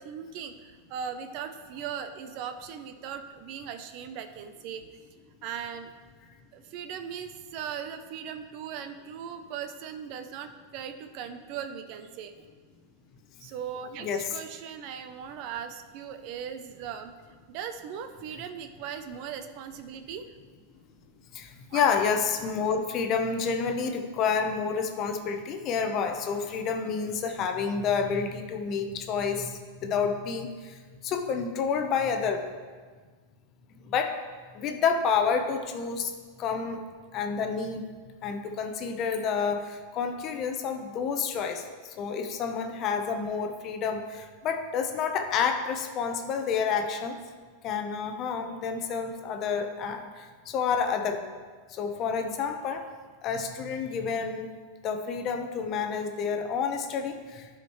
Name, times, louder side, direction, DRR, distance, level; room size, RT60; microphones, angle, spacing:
voice 1, 0.0-4.8 5.4-5.9 6.5-12.3 13.4-17.1 17.5-20.2 21.7-21.8, right 8 dB, 50° right, 9 dB, 0.6 m, -38 dB
voice 2, 21.3-32.4 33.8-34.1 34.5-36.1 36.4-36.8 37.1-37.8 38.2-41.6 42.0-47.1 47.6-51.2 51.7-52.8 53.2-54.5 54.8-57.5, left 6 dB, 40° left, 6 dB, 0.8 m, -29 dB
12.0 x 5.0 x 3.1 m, 1.5 s
hypercardioid pair, 125°, 0 cm